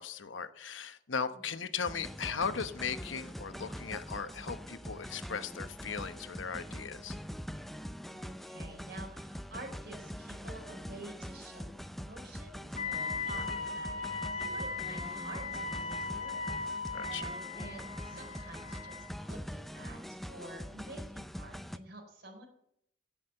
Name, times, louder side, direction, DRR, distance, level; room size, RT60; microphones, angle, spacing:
voice 1, 0.0-7.2 16.9-17.3, left 6 dB, 85° left, 10 dB, 1.0 m, -37 dB
voice 2, 1.3-1.7 8.1-13.5 13.7-16.7 17.6-22.5, right 2 dB, 60° right, 2 dB, 4.2 m, -49 dB
sound 1, 1.9-21.8, equal, ahead, 0.5 m, -43 dB
Wind instrument woodwind instrument, 12.7-19.2, left 4 dB, 45° left, 1.7 m, -38 dB
16.0 x 6.3 x 7.9 m, 0.73 s
head